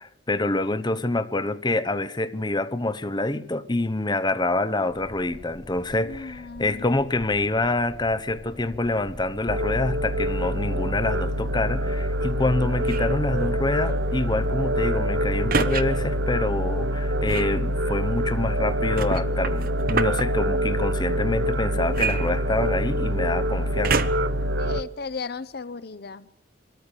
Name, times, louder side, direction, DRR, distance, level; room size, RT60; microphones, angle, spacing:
voice 1, 0.0-24.0, left 2 dB, 20° left, 1.0 m, -26 dB
sound 1, 4.9-16.3, equal, 5° right, 5.1 m, -44 dB
voice 2, 6.0-6.9 24.6-26.3, left 4 dB, 55° left, 0.7 m, -35 dB
sound 2, 9.5-24.8, equal, 75° right, 1.0 m, -25 dB
sound 3, 12.8-13.2 15.5-15.8 17.2-17.6 19.0-20.2 21.9-22.9 23.8-24.4 25.0-25.1, right 4 dB, 50° right, 1.0 m, -27 dB
23.5 x 13.5 x 8.5 m
head